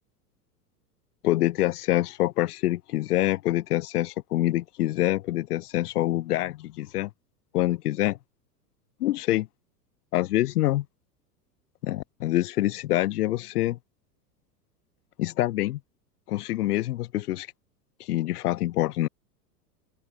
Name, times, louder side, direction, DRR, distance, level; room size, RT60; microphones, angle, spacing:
voice 1, 1.2-7.1 7.5-8.2 9.0-9.5 10.1-10.8 11.8-13.8 15.2-15.8 16.3-17.5 18.0-19.1, left 15 dB, 65° left, 2.0 m, -26 dB
open air
hypercardioid pair, 100°, 49 cm